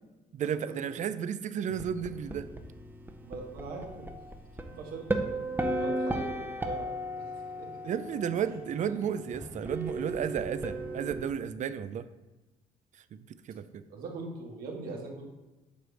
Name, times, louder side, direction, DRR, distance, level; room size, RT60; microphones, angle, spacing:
voice 1, 0.3-2.5 7.9-12.1 13.1-13.8, right 8 dB, 55° right, 13 dB, 0.5 m, -33 dB
sound 1, 1.7-11.3, right 1 dB, 15° right, 0.8 m, -35 dB
voice 2, 3.2-4.1 4.6-5.4 5.7-6.9 7.2-7.9 8.8-9.0 13.9-15.3, right 3 dB, 80° right, 0 dB, 1.6 m, -42 dB
7.8 x 3.2 x 6.4 m, 1.1 s
supercardioid pair, 70°, 15 cm